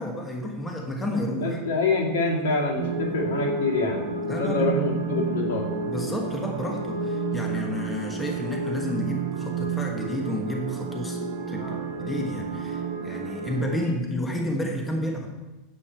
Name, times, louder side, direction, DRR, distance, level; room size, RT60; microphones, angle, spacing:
voice 1, 0.0-1.6 4.2-4.7 5.9-11.2 11.5-15.3, left 1 dB, 10° left, 1 dB, 1.3 m, -31 dB
voice 2, 1.4-4.0 4.4-5.7 11.6-11.8, left 3 dB, 85° left, -2 dB, 2.4 m, -26 dB
sound 1, 2.8-13.8, right 4 dB, 75° right, 1.1 m, -30 dB
8.5 x 7.6 x 4.5 m, 1.1 s
supercardioid pair, 140°, 0 cm